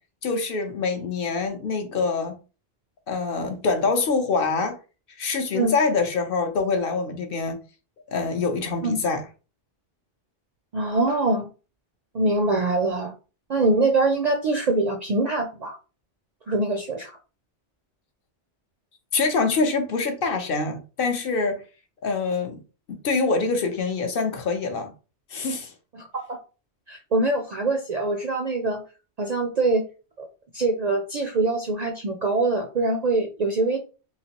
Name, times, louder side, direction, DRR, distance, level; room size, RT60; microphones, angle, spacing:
voice 1, 0.2-2.4 3.1-4.8 5.2-7.6 8.1-9.2 19.1-21.6 22.0-22.6 22.9-24.9 25.3-25.7, left 4 dB, 60° left, 0.7 m, -25 dB
voice 2, 10.7-11.5 12.1-13.1 13.5-15.8 16.5-17.2 25.9-26.4 26.9-28.8 29.2-29.8 30.2-30.3 30.5-33.8, right 2 dB, 55° right, 0.4 m, -24 dB
3.2 x 2.9 x 2.8 m
omnidirectional pair, 1.2 m